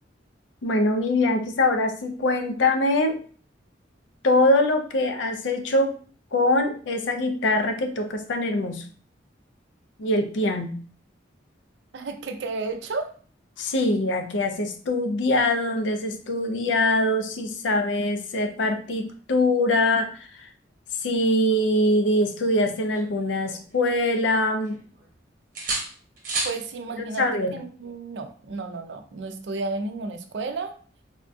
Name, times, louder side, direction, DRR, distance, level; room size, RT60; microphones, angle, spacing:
voice 1, 0.6-3.2 4.2-6.0 6.3-8.8 10.0-10.7 13.6-20.5 21.0-24.8 27.2-27.5, left 1 dB, 75° left, 6 dB, 0.5 m, -23 dB
voice 2, 11.9-13.1 26.4-27.3 27.5-30.7, right 3 dB, 65° right, 7 dB, 0.4 m, -32 dB
sound 1, 22.4-24.0 24.3-25.1 25.6-26.6 28.5-28.7, right 3 dB, 45° right, 0.8 m, -33 dB
3.5 x 2.3 x 2.5 m, 0.42 s
head